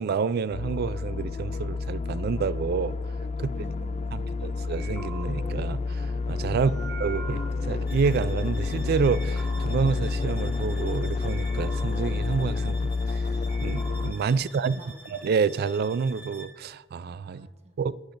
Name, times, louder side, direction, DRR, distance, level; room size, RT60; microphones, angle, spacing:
voice 1, 0.0-3.0 3.4-3.5 4.1-13.3 13.6-14.8 15.1-17.5 17.8-18.0, right 5 dB, 55° right, 0.3 m, -28 dB
sound 1, 0.5-14.1, left 3 dB, 35° left, 0.3 m, -29 dB
voice 2, 3.4-4.6 6.5-6.9 14.3-15.2 17.3-17.8, right 3 dB, 35° right, 1.1 m, -50 dB
sound 2, 4.7-8.7 9.1-11.0 11.3-13.2 13.5-14.1, right 5 dB, 85° right, 2.4 m, -45 dB
sound 3, 7.9-16.7, equal, 10° right, 1.6 m, -48 dB
14.0 x 10.0 x 2.6 m
head